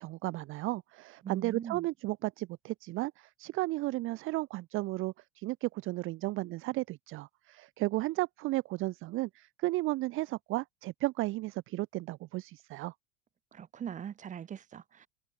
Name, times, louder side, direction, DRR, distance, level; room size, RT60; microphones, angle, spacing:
voice 1, 0.0-12.9, right 19 dB, 40° right, 0.7 m, -34 dB
voice 2, 1.2-1.9 13.5-15.1, right 8 dB, 20° right, 1.3 m, -41 dB
supercardioid pair, 145°, 33 cm